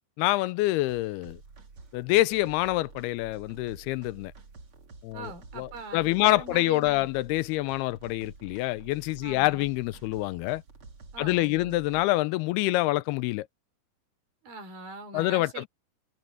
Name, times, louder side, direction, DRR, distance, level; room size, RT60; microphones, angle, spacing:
voice 1, 0.2-1.4 1.9-4.3 5.0-10.6 11.2-13.5 15.1-15.7, left 18 dB, 90° left, 2.6 m, -26 dB
sound 1, 0.9-12.1, right 3 dB, 35° right, 3.2 m, -49 dB
voice 2, 5.1-7.1 9.2-9.7 11.1-12.0 14.4-15.7, right 3 dB, 65° right, 5.7 m, -42 dB
omnidirectional pair, 4.5 m